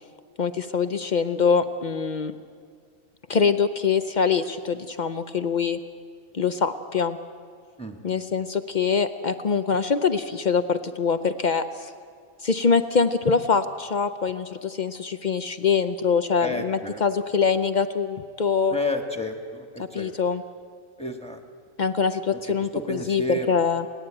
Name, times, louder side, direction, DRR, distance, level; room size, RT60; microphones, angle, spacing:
voice 1, 0.4-2.3 3.3-5.8 6.3-7.2 8.0-11.9 12.4-18.8 19.8-20.4 21.8-23.9, left 5 dB, 60° left, 10 dB, 0.4 m, -24 dB
voice 2, 16.4-17.0 18.7-20.1 21.0-21.4 22.3-23.6, left 1 dB, 5° left, 4 dB, 1.4 m, -31 dB
29.5 x 10.5 x 8.9 m, 2.1 s
omnidirectional pair, 1.6 m